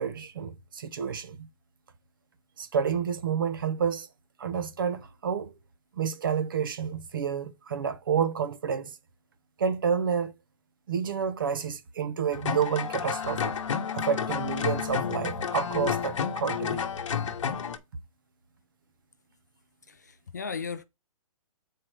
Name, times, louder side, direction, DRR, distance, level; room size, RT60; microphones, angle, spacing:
voice 1, 0.0-1.5 2.6-4.1 4.4-5.5 6.0-8.9 9.6-10.3 10.9-13.5 13.9-16.8, right 7 dB, 40° right, 0.7 m, -29 dB
sound 1, 12.3-17.8, left 7 dB, 60° left, 1.1 m, -31 dB
voice 2, 19.9-20.8, left 5 dB, 30° left, 0.4 m, -36 dB
7.5 x 4.6 x 4.7 m
hypercardioid pair, 180°, 18 cm